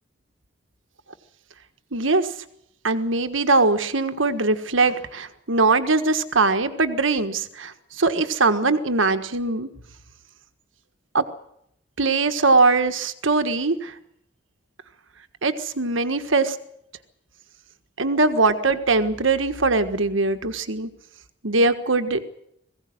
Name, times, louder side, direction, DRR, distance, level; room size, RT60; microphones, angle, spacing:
voice 1, 1.9-2.3 2.8-9.7 11.1-11.2 12.0-13.9 15.4-16.6 18.0-20.9 21.4-22.3, right 3 dB, 85° right, 9 dB, 1.5 m, -21 dB
21.5 x 16.5 x 9.5 m, 0.75 s
head